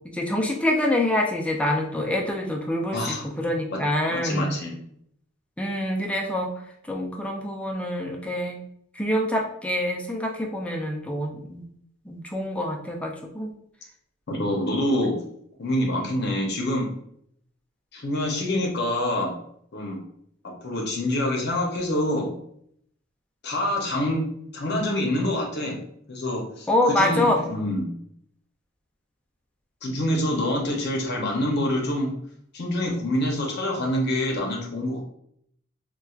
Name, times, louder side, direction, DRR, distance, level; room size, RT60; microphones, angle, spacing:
voice 1, 0.1-3.0 3.4-4.5 5.6-6.5 6.9-8.6 9.0-11.7 12.1-13.5 26.7-27.4, left 1 dB, 5° left, 0 dB, 0.4 m, -25 dB
voice 2, 2.9-3.3 3.7-3.8 4.1-4.8 14.3-15.1 15.6-16.9 17.9-19.3 19.7-20.0 20.6-22.3 23.4-24.2 24.5-25.8 26.1-27.9 29.8-32.1 32.5-35.0, left 1 dB, 50° left, 0 dB, 0.7 m, -26 dB
4.3 x 2.3 x 2.3 m, 0.70 s
head